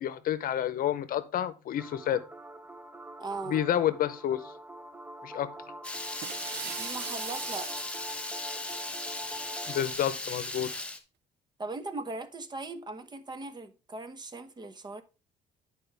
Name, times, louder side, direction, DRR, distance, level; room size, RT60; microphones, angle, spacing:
voice 1, 0.0-2.2 3.5-4.5 5.2-5.5 9.7-10.7, left 11 dB, 60° left, 0.8 m, -29 dB
sound 1, 1.8-10.0, right 1 dB, 10° right, 0.6 m, -45 dB
voice 2, 3.2-3.6 6.6-7.7 11.6-15.0, right 3 dB, 25° right, 0.9 m, -39 dB
Water tap faucet / Liquid, 5.8-11.0, left 2 dB, 5° left, 1.1 m, -37 dB
sound 2, 6.2-8.3, right 14 dB, 80° right, 0.5 m, -41 dB
9.9 x 4.5 x 3.4 m
cardioid pair, 110°, 17 cm